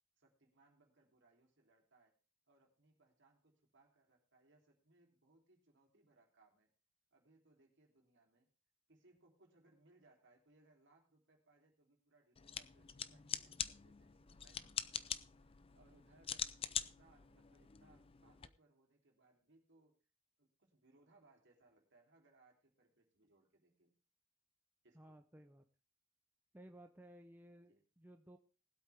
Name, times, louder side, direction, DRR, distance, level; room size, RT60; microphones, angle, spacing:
voice 1, 0.2-2.1 2.5-6.7 7.1-8.5 8.9-16.5 16.8-20.0 20.4-24.0 24.8-25.3 27.7-27.8, right 2 dB, 60° right, 1 dB, 3.5 m, -71 dB
sound 1, 12.4-18.5, left 8 dB, 25° left, 0.5 m, -45 dB
voice 2, 24.9-25.7 26.5-28.4, right 1 dB, 10° right, 5 dB, 0.7 m, -58 dB
19.5 x 8.3 x 3.5 m, 0.35 s
head